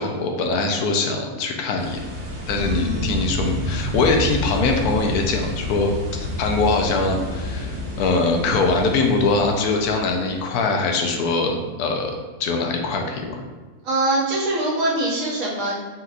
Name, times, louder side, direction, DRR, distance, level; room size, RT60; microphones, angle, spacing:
voice 1, 0.0-2.0 2.5-12.1 12.4-13.4, left 3 dB, 80° left, 2 dB, 1.1 m, -22 dB
sound 1, 1.8-10.4, left 2 dB, 45° right, 1.2 m, -29 dB
voice 2, 2.6-3.3 13.8-15.8, right 1 dB, 65° right, -5 dB, 1.5 m, -23 dB
4.3 x 4.0 x 2.4 m, 1.3 s
omnidirectional pair, 1.6 m